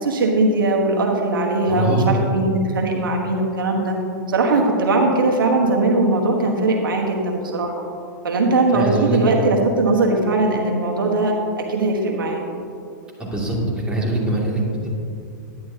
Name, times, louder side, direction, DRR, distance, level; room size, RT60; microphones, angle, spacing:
voice 1, 0.0-4.0 4.3-7.8 8.2-12.4, right 2 dB, 85° right, 1 dB, 1.3 m, -20 dB
voice 2, 1.7-2.2 8.7-9.2 13.2-14.9, right 2 dB, 10° right, -5 dB, 2.4 m, -22 dB
11.0 x 10.0 x 2.8 m, 2.4 s
hypercardioid pair, 120°, 11 cm